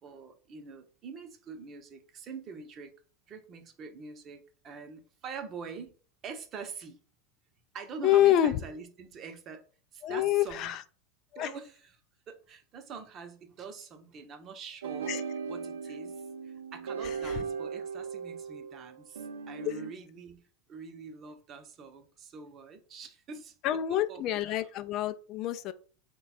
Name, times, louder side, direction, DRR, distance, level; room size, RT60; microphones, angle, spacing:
voice 1, 0.0-2.9 3.3-5.9 6.2-7.0 7.7-9.6 9.9-10.8 11.3-12.0 12.3-24.7, right 5 dB, 35° right, 0.7 m, -45 dB
voice 2, 8.0-8.5 10.0-10.8 11.3-11.5 15.1-15.2 17.2-17.4 19.7-19.8 23.6-25.7, left 12 dB, 45° left, 0.3 m, -27 dB
sound 1, 14.8-19.9, right 5 dB, 75° right, 0.3 m, -38 dB
3.9 x 2.2 x 4.0 m
figure-of-eight pair, 80°, 0 cm